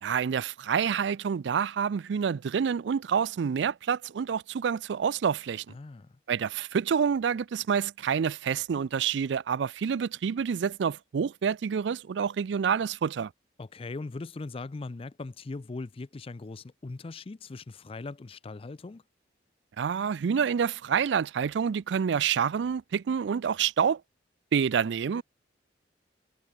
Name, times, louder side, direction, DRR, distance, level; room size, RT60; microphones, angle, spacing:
voice 1, 0.0-5.6 6.3-13.3 19.8-24.0 24.5-25.2, right 7 dB, 70° right, 0.4 m, -28 dB
voice 2, 5.7-6.1 13.6-19.0, left 3 dB, 30° left, 0.4 m, -40 dB
head